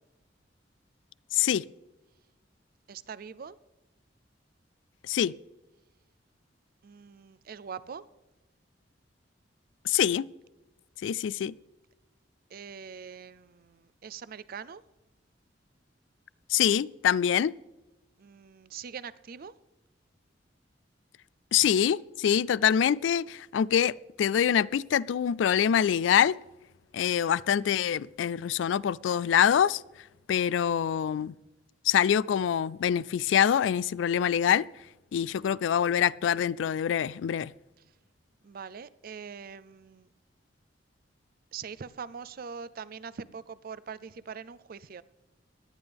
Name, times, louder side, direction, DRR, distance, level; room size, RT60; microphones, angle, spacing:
voice 1, 1.3-1.6 5.1-5.3 9.9-10.3 11.0-11.5 16.5-17.5 21.5-26.4 26.9-29.8 30.3-31.3 31.9-34.7 35.1-37.5, left 9 dB, 90° left, 22 dB, 0.3 m, -25 dB
voice 2, 2.9-3.6 6.8-8.0 12.5-14.8 18.2-19.5 38.4-40.1 41.5-45.0, right 6 dB, 55° right, 17 dB, 0.5 m, -43 dB
18.0 x 11.0 x 3.5 m, 1.0 s
head